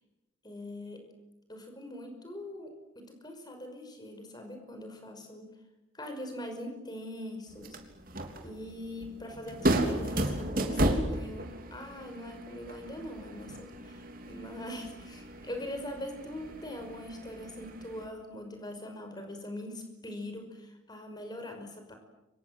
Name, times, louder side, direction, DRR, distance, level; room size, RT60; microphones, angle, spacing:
voice 1, 0.4-1.0 1.5-5.5 5.9-7.8 8.4-22.0, left 1 dB, 20° left, 5 dB, 5.6 m, -42 dB
sound 1, 7.5-18.1, right 1 dB, 45° right, 3.5 m, -34 dB
30.0 x 25.5 x 7.9 m, 0.98 s
head